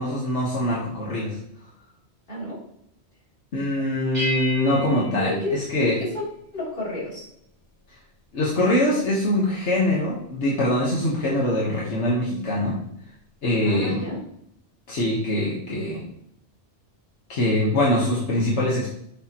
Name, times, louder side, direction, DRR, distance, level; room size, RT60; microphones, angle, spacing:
voice 1, 0.0-1.4 3.5-6.0 7.9-8.0 8.3-12.8 13.4-14.1 14.9-16.0 17.3-18.9, left 1 dB, 75° left, -4 dB, 1.7 m, -23 dB
voice 2, 2.3-2.6 5.2-6.2 6.5-7.3 13.6-14.2, left 2 dB, 50° left, -7 dB, 3.5 m, -30 dB
sound 1, 4.1-6.4, right 1 dB, 35° right, 3.0 m, -33 dB
7.4 x 6.7 x 3.0 m, 0.71 s
omnidirectional pair, 1.2 m